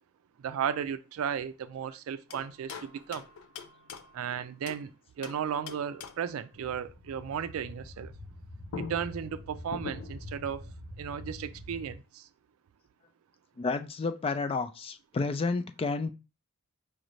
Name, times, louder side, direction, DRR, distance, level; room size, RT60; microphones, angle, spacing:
voice 1, 0.4-3.2 4.1-4.9 5.2-8.1 8.8-10.6 11.0-12.2, right 8 dB, 85° right, 0.3 m, -35 dB
sound 1, 2.3-4.9 5.2-6.4 8.3-8.4 8.7-10.3, left 5 dB, 85° left, 0.5 m, -44 dB
sound 2, 6.5-11.9, left 1 dB, 65° left, 1.2 m, -45 dB
voice 2, 13.6-16.1, left 4 dB, 25° left, 0.3 m, -31 dB
4.9 x 2.6 x 3.1 m
head